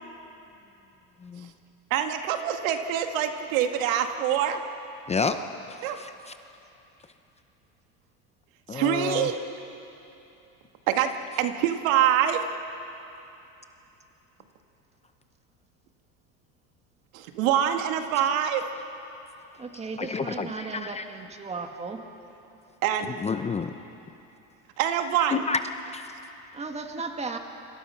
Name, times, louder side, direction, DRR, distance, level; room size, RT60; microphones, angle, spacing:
voice 1, 1.9-4.6 5.8-6.0 8.7-9.4 10.9-11.1 11.4-12.5 17.1-18.6 22.8-23.2 24.8-25.4, right 10 dB, 85° right, 6 dB, 2.0 m, -25 dB
voice 2, 5.1-5.4 5.7-6.3 8.7-9.3 20.0-21.0 23.2-23.7 25.3-25.6 25.9-26.1, left 5 dB, 15° left, 8 dB, 0.7 m, -30 dB
voice 3, 19.6-22.0 26.5-27.4, right 4 dB, 15° right, 4 dB, 2.1 m, -35 dB
30.0 x 25.5 x 5.8 m, 2.9 s
supercardioid pair, 130°, 39 cm